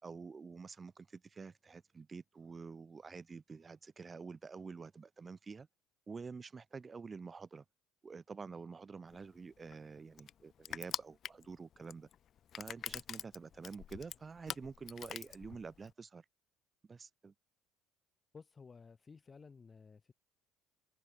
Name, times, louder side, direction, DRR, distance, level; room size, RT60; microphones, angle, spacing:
voice 1, 0.0-5.7 6.1-7.6 8.0-12.1 12.6-16.2 16.9-17.3, right 4 dB, 30° right, 5.1 m, -48 dB
Crushing, 9.1-15.9, left 9 dB, 50° left, 1.6 m, -45 dB
voice 2, 18.3-20.1, left 5 dB, 30° left, 4.9 m, -55 dB
figure-of-eight pair, 55°, 0 cm